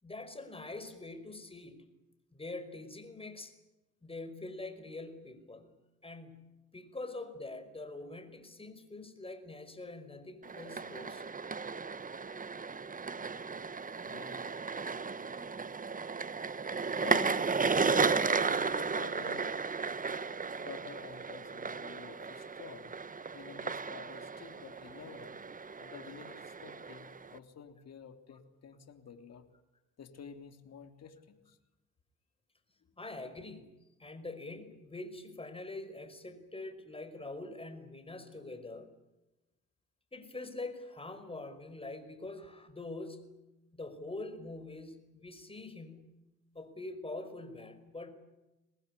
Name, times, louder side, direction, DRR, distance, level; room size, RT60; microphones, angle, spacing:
voice 1, 0.0-1.9 2.3-3.5 4.0-11.2 33.0-38.9 40.1-43.4 43.7-46.2 46.6-48.1, left 2 dB, 20° left, 10 dB, 5.2 m, -44 dB
sound 1, 10.4-27.4, right 5 dB, 25° right, 1.3 m, -34 dB
voice 2, 14.0-14.4 16.9-19.6 20.6-22.9 23.3-25.4 25.8-29.5 30.0-31.6, left 7 dB, 55° left, 7 dB, 3.5 m, -49 dB
24.5 x 19.5 x 10.0 m, 0.98 s
cardioid pair, 90°, 30 cm